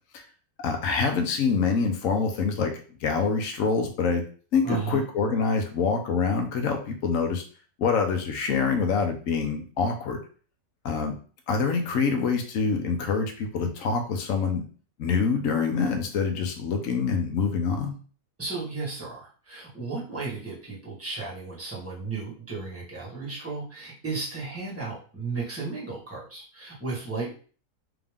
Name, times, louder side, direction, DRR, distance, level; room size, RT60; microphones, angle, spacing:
voice 1, 0.6-4.2 4.5-7.4 7.8-10.2 10.8-11.2 11.5-14.6 15.0-18.0, left 5 dB, 65° left, 4 dB, 1.1 m, -25 dB
voice 2, 4.6-5.0 18.4-27.3, right 4 dB, 10° right, -4 dB, 1.3 m, -34 dB
3.6 x 2.9 x 3.5 m, 0.40 s
omnidirectional pair, 1.5 m